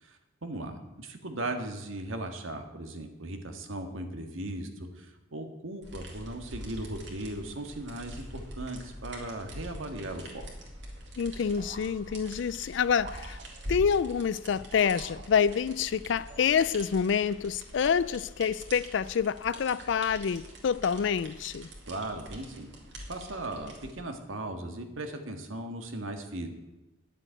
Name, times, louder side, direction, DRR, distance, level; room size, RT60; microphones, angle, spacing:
voice 1, 0.0-10.5 21.9-22.7 23.1-26.5, right 1 dB, 80° right, 1.7 m, -38 dB
sound 1, 5.8-23.9, right 1 dB, 65° right, 2.6 m, -44 dB
voice 2, 11.2-13.4 13.7-21.7, left 7 dB, 60° left, 0.4 m, -27 dB
sound 2, 11.6-12.5 13.0-13.9 14.7-15.8 16.3-17.0, right 4 dB, 35° right, 0.8 m, -49 dB
10.5 x 7.6 x 9.0 m
head